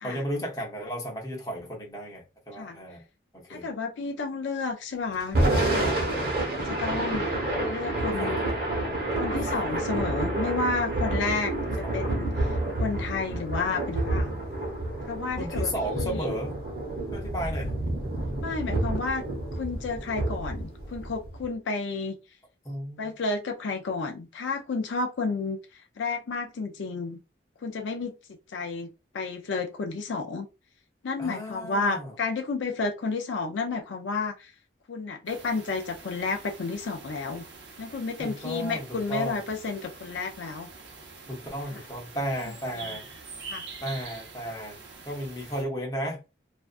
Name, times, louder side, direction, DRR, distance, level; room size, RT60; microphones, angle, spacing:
voice 1, 0.0-3.0 3.3-3.7 8.0-8.6 9.4-9.5 11.8-12.0 15.4-16.6 17.1-17.7 22.6-23.1 31.2-32.2 38.2-39.4 41.3-43.1 43.8-44.8 45.1-46.2, equal, 20° left, 0.7 m, -34 dB
voice 2, 3.5-6.0 6.6-7.3 7.7-8.5 9.2-12.3 12.8-14.4 15.1-16.3 18.4-19.2 19.5-22.2 23.0-25.6 26.0-27.2 27.6-28.1 28.5-28.9 29.1-30.5 31.0-34.5 34.9-37.4 37.8-40.7 41.7-41.8 42.7-42.9 43.5-43.6, left 4 dB, 80° left, 0.4 m, -31 dB
Thunder / Rain, 5.2-21.5, right 2 dB, 50° right, 1.0 m, -29 dB
sound 1, 35.3-45.6, right 4 dB, 75° right, 0.7 m, -45 dB
2.5 x 2.2 x 2.4 m
head